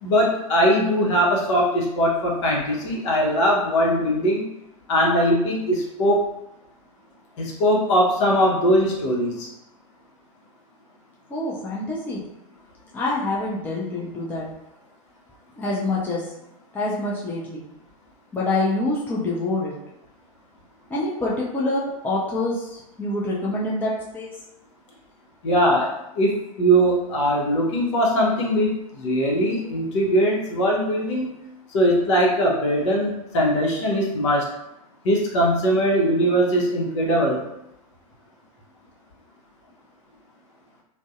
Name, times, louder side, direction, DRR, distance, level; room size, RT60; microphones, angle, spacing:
voice 1, 0.0-4.5 4.9-6.3 7.4-9.5 25.4-31.3 31.7-34.5 35.0-37.4, equal, 55° left, -2 dB, 0.7 m, -21 dB
voice 2, 11.3-12.2 12.9-14.5 15.6-16.2 16.7-17.6 18.3-19.7 20.9-24.3, left 2 dB, 10° left, -6 dB, 0.4 m, -26 dB
2.5 x 2.0 x 2.4 m, 0.87 s
figure-of-eight pair, 95°, 18 cm